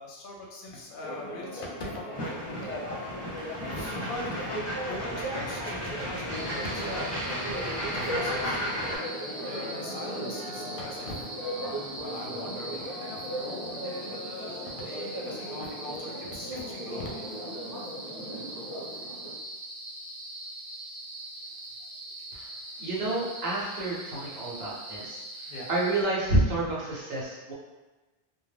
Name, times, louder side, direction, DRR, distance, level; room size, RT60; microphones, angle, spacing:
voice 1, 0.0-2.7 3.5-8.6 9.4-17.2 25.5-25.7, left 2 dB, 65° left, -2 dB, 0.7 m, -41 dB
Church bell, 1.0-19.3, equal, 20° right, 0.7 m, -37 dB
sound 1, 2.1-9.0, equal, 20° left, 0.5 m, -35 dB
sound 2, 6.3-26.0, right 1 dB, 55° right, 0.4 m, -42 dB
voice 2, 22.8-27.5, right 1 dB, 70° right, -5 dB, 1.0 m, -29 dB
2.4 x 2.2 x 3.2 m, 1.2 s
omnidirectional pair, 1.1 m